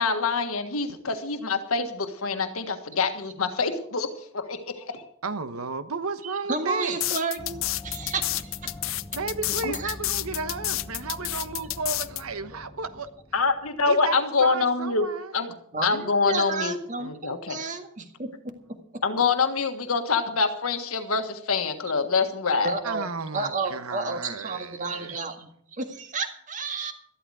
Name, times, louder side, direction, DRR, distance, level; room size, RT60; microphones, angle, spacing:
voice 1, 0.0-4.1 4.3-5.0 9.6-9.7 13.3-15.1 15.3-15.5 15.8-16.8 17.0-17.6 19.0-22.7, left 4 dB, 85° left, 1.5 m, -25 dB
voice 2, 5.2-7.0 9.1-13.1 13.9-15.3 22.8-25.2, right 4 dB, 90° right, 1.1 m, -33 dB
voice 3, 6.2-8.7 9.7-9.9 15.7-19.0 22.6-23.1 23.3-26.9, right 4 dB, 35° right, 1.9 m, -32 dB
sound 1, 7.0-12.2, left 17 dB, 65° left, 0.6 m, -29 dB
sound 2, 7.4-14.1, left 1 dB, 20° left, 1.2 m, -43 dB
14.0 x 12.5 x 4.9 m
head